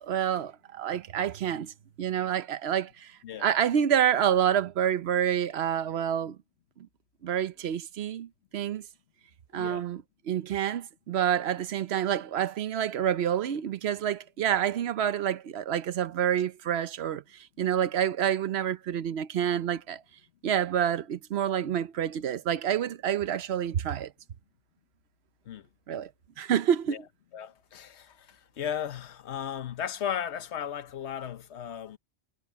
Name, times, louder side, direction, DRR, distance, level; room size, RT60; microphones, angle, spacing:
voice 1, 0.0-3.1 3.4-6.4 7.2-8.8 9.5-20.0 20.4-24.1 25.9-26.1 26.4-27.1, right 9 dB, 75° right, 1.0 m, -28 dB
voice 2, 9.5-9.8 25.5-25.6 26.9-27.0 27.3-32.0, left 9 dB, 90° left, 1.1 m, -36 dB
omnidirectional pair, 1.1 m